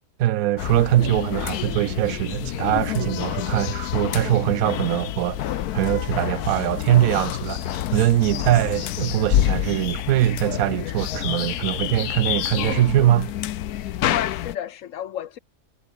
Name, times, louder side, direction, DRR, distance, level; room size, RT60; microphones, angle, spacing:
voice 1, 0.2-13.3, right 14 dB, 70° right, 1.1 m, -22 dB
sound 1, 0.6-14.6, left 13 dB, 85° left, 1.3 m, -28 dB
sound 2, 6.9-9.4, left 2 dB, 50° left, 5.0 m, -47 dB
voice 2, 13.8-15.4, left 10 dB, 65° left, 0.9 m, -32 dB
omnidirectional pair, 1.6 m